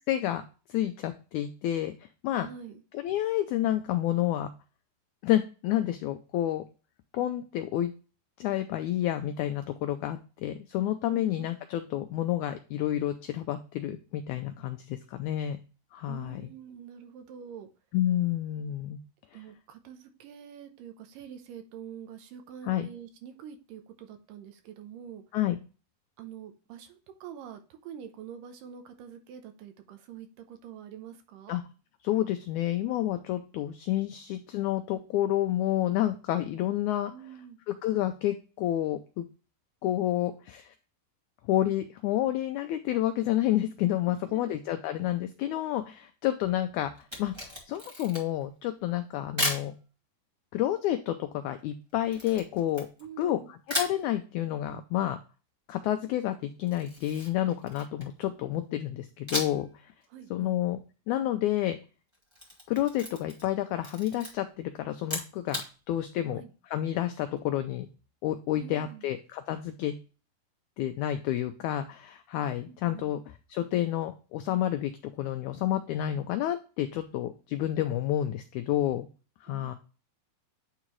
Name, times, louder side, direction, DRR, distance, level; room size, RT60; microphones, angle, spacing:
voice 1, 0.1-0.4 0.7-1.9 2.2-2.5 2.9-4.5 5.2-6.6 7.1-7.9 8.4-15.6 15.9-16.5 17.9-19.0 19.3-19.4 22.6-22.9 25.3-25.6 31.5-31.6 32.0-37.1 37.7-39.2 39.8-40.7 41.5-46.9 47.2-49.7 50.5-52.9 53.2-55.2 55.7-59.7 60.3-60.8 61.1-61.8 62.7-65.6 65.9-67.9 68.2-70.0 70.8-73.2 73.5-79.1 79.4-79.7, left 13 dB, 85° left, 8 dB, 1.7 m, -29 dB
voice 2, 2.4-2.8 11.1-11.5 16.0-17.7 19.3-25.2 26.2-31.6 37.1-37.6 44.3-44.6 53.0-53.5 60.1-60.6 66.3-66.5 68.6-69.1 72.6-73.1 79.5-79.7, right 8 dB, 80° right, 6 dB, 2.4 m, -46 dB
Camera, 47.0-48.4 49.4-49.7 52.1-53.3 53.7-54.0 56.7-58.2 59.3-59.7 60.0-60.1 62.1-63.5 63.8-64.3 65.0-65.7, left 1 dB, 10° right, 1.3 m, -35 dB
9.0 x 3.7 x 3.0 m, 0.34 s
omnidirectional pair, 4.0 m